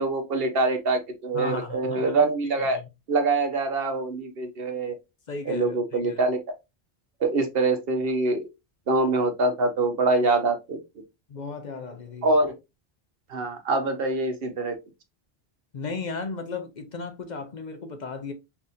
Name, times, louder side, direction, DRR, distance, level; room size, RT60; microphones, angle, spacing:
voice 1, 0.0-2.8 3.1-4.9 5.4-6.4 7.2-8.5 8.9-10.8 12.2-12.5 13.3-14.7, right 3 dB, 65° right, 1.0 m, -24 dB
voice 2, 1.3-2.2 2.6-2.7 5.3-5.8 6.1-6.2 11.3-12.3 15.7-18.3, left 4 dB, 50° left, 0.7 m, -35 dB
5.5 x 2.7 x 2.6 m
omnidirectional pair, 1.1 m